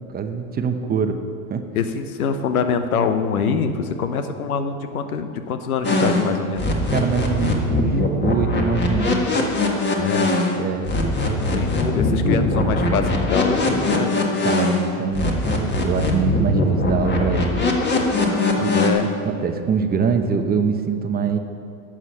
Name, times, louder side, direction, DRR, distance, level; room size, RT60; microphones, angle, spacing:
voice 1, 0.1-1.2 1.5-1.7 6.9-9.4 10.6-10.9 14.4-17.7 18.6-18.7 19.0-21.4, right 5 dB, 20° right, 6 dB, 0.8 m, -24 dB
voice 2, 1.7-6.7 10.0-10.3 11.2-14.2 18.7-19.1, left 6 dB, 90° left, 9 dB, 0.9 m, -24 dB
sound 1, 5.8-10.6 10.9-14.9 15.1-18.9, left 2 dB, 25° left, 1.6 m, -21 dB
11.5 x 7.5 x 5.6 m, 2.4 s
hypercardioid pair, 105°, 42 cm